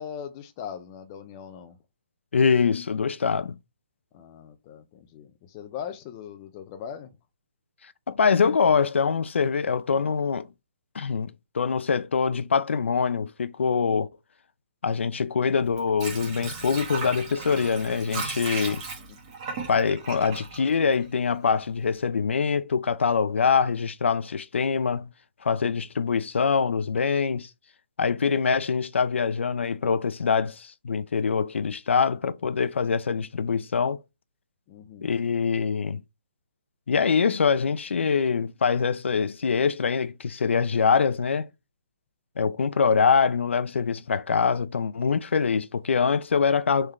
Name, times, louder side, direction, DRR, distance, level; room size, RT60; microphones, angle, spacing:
voice 1, 0.0-1.8 4.1-7.1 19.1-19.2 34.7-35.1, left 8 dB, 15° left, 0.3 m, -40 dB
voice 2, 2.3-3.6 8.1-10.4 10.9-14.1 14.8-18.8 19.7-25.1 25.4-27.5 28.0-34.0 35.0-36.0 36.9-41.5 42.4-46.9, left 5 dB, 75° left, 0.5 m, -24 dB
Water / Sink (filling or washing), 15.6-21.5 21.8-21.9, right 4 dB, 20° right, 1.2 m, -36 dB
3.7 x 3.3 x 4.2 m
hypercardioid pair, 175°, 6 cm